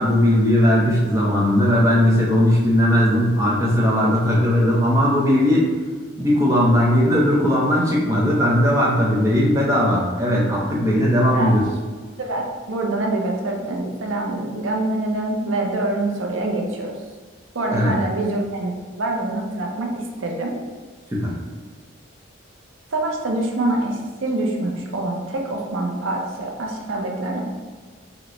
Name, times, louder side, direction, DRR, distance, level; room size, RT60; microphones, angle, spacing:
voice 1, 0.0-5.7 6.2-11.6 17.7-17.9 21.1-21.3, equal, 15° right, -5 dB, 0.6 m, -18 dB
voice 2, 12.2-16.9 17.5-20.5 22.9-27.4, right 2 dB, 75° right, 0 dB, 0.5 m, -25 dB
3.8 x 2.2 x 3.0 m, 1.5 s
head